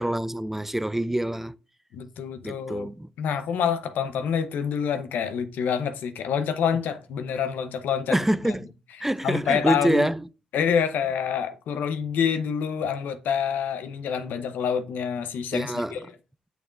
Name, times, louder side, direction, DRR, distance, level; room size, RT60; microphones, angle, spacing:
voice 1, 0.0-1.6 2.4-3.1 8.1-8.7 9.0-10.2 15.5-16.0, right 1 dB, 10° right, 0.3 m, -26 dB
voice 2, 1.9-2.9 3.2-8.2 9.2-10.1 10.5-16.1, left 7 dB, 75° left, 0.7 m, -27 dB
6.8 x 6.3 x 2.5 m
supercardioid pair, 50°, 3 cm